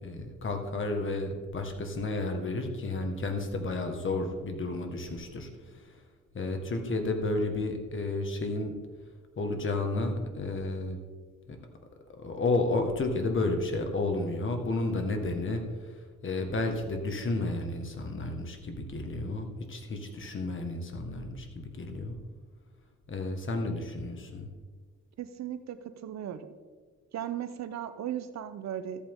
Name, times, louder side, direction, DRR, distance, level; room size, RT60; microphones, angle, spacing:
voice 1, 0.0-6.0 6.3-8.7 9.4-11.0 11.5-11.6 12.2-22.2 23.1-24.5, left 2 dB, 40° left, 5 dB, 1.8 m, -32 dB
voice 2, 25.2-25.8 26.0-26.5 27.1-29.1, right 10 dB, 60° right, 11 dB, 0.9 m, -36 dB
13.5 x 8.6 x 3.8 m, 1.5 s
cardioid pair, 90°, 30 cm